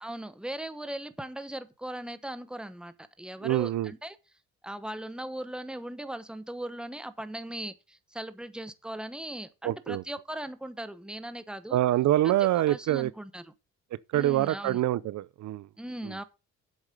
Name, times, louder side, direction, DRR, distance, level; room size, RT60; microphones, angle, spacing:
voice 1, 0.0-4.2 4.6-11.8 12.7-13.5 14.1-14.8 15.8-16.2, right 1 dB, 5° right, 1.1 m, -39 dB
voice 2, 3.4-3.9 9.6-10.0 11.7-13.1 14.1-15.7, right 14 dB, 70° right, 0.6 m, -25 dB
8.2 x 7.2 x 5.3 m
cardioid pair, 90°, 30 cm